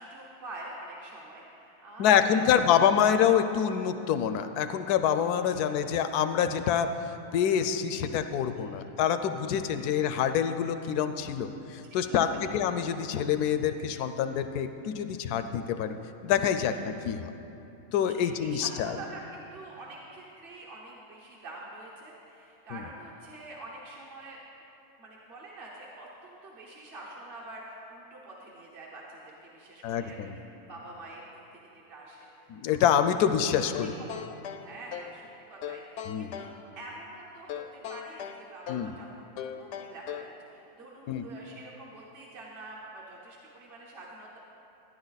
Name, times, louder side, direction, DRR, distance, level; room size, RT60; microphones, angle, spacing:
voice 1, 0.0-2.7 5.5-5.9 8.6-8.7 12.1-12.2 16.6-16.7 18.0-24.4 25.0-30.4 30.7-31.2 31.9-32.8 34.0-34.3 34.6-44.4, right 2 dB, 40° right, -4 dB, 1.1 m, -46 dB
voice 2, 2.0-6.9 7.3-15.9 16.2-17.3 17.9-19.0 22.7-22.8 29.8-30.3 32.5-34.0 36.0-36.3 38.7-38.9 41.1-41.3, left 8 dB, 85° left, 9 dB, 1.1 m, -26 dB
sound 1, 33.7-35.2 35.6-36.6 37.5-39.0 39.4-40.4, left 9 dB, 65° left, 0.7 m, -39 dB
13.0 x 10.5 x 4.0 m, 2.9 s
omnidirectional pair, 1.6 m